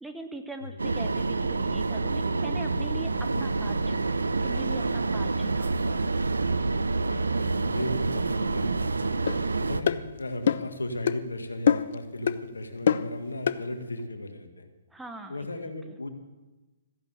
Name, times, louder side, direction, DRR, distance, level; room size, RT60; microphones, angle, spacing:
voice 1, 0.0-6.0 14.9-15.4, right 2 dB, 5° right, 5 dB, 0.9 m, -42 dB
sound 1, 0.8-9.8, right 3 dB, 70° right, 0.8 m, -27 dB
voice 2, 7.1-9.2 9.6-14.7 15.3-16.1, left 1 dB, 75° left, 7 dB, 1.8 m, -36 dB
sound 2, 9.3-9.4 9.9-10.0 10.5-10.7 11.1-11.2 11.7-12.0 12.3-12.4 12.9-13.1 13.5-13.6, left 8 dB, 50° left, 0.6 m, -23 dB
15.0 x 11.0 x 6.8 m, 1.1 s
figure-of-eight pair, 125°, 0 cm